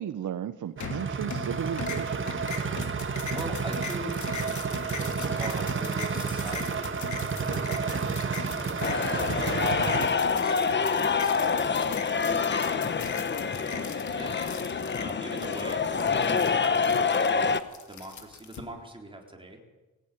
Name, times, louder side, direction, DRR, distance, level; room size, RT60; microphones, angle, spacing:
voice 1, 0.0-2.5, right 9 dB, 70° right, 11 dB, 0.9 m, -35 dB
sound 1, 0.8-1.5 1.8-18.6, left 6 dB, 65° left, 2.8 m, -40 dB
sound 2, 0.8-10.1, right 5 dB, 40° right, 1.8 m, -31 dB
voice 2, 3.0-4.4 5.4-9.2 9.9-17.6 17.9-19.6, right 1 dB, 15° right, 1 dB, 4.0 m, -43 dB
sound 3, 8.8-17.6, left 5 dB, 35° left, 1.1 m, -26 dB
20.5 x 17.5 x 9.4 m, 1.2 s
wide cardioid pair, 135°, 32 cm